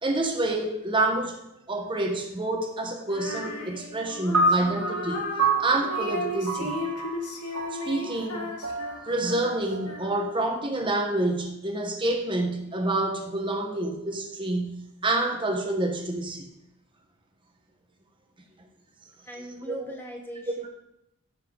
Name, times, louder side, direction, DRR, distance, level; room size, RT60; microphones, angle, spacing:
voice 1, 0.0-1.4 1.7-5.3 5.6-6.8 7.7-8.5 9.1-16.5 19.7-19.9, right 2 dB, 20° right, 3 dB, 1.1 m, -28 dB
Female singing, 3.1-10.5, left 2 dB, 90° left, 1.7 m, -36 dB
sound 1, 4.3-10.8, right 3 dB, 70° right, 2.2 m, -29 dB
voice 2, 19.2-20.7, equal, 10° left, 1 dB, 1.3 m, -40 dB
15.0 x 6.7 x 3.9 m, 0.82 s
head